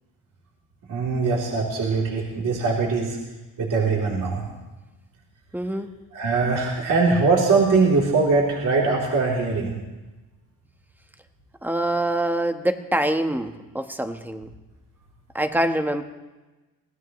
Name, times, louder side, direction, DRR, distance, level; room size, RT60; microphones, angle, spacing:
voice 1, 0.9-3.2 3.6-4.4 6.1-9.8, right 4 dB, 50° right, -3 dB, 3.5 m, -21 dB
voice 2, 5.5-5.9 11.6-14.5 15.3-16.0, right 1 dB, 5° right, 6 dB, 1.2 m, -25 dB
25.0 x 17.5 x 3.2 m, 1.1 s
cardioid pair, 110°, 39 cm